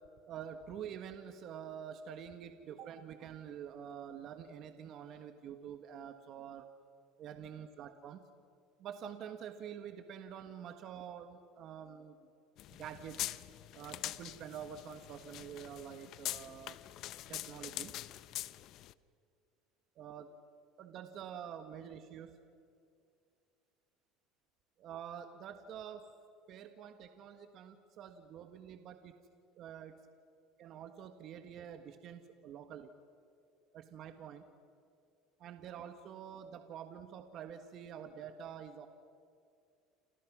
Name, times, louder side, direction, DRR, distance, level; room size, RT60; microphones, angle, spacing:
voice 1, 0.3-6.7 7.2-8.2 8.8-12.2 12.8-13.3 13.7-16.8 17.3-18.0 19.9-20.3 20.8-22.4 24.8-26.1 26.5-29.1 29.6-30.0 30.6-32.9 33.7-34.4 35.4-38.9, right 8 dB, 50° right, 8 dB, 1.5 m, -47 dB
sound 1, 12.6-18.9, left 14 dB, 55° left, 0.7 m, -44 dB
28.5 x 28.0 x 6.2 m, 2.4 s
supercardioid pair, 120°, 0 cm